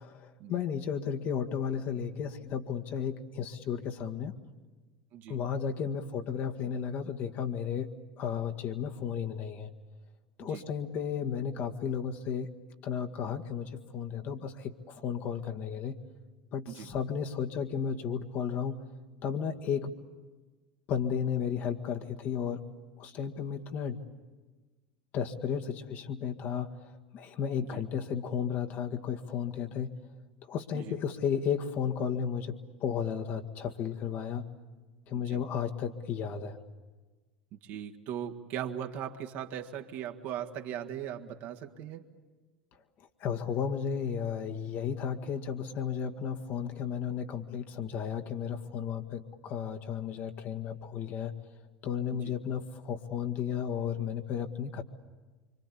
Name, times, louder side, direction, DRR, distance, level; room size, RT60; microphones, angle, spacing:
voice 1, 0.0-4.4 5.3-7.9 8.2-9.7 10.4-12.5 12.8-16.0 16.5-18.8 19.2-19.9 20.9-22.7 23.0-24.0 25.1-29.9 30.5-34.4 35.1-36.6 43.2-51.3 51.8-54.8, left 7 dB, 50° left, 6 dB, 1.8 m, -33 dB
voice 2, 37.5-42.0 52.1-52.3, right 9 dB, 55° right, 3 dB, 1.8 m, -39 dB
25.5 x 25.5 x 8.5 m, 1.3 s
figure-of-eight pair, 75°, 4 cm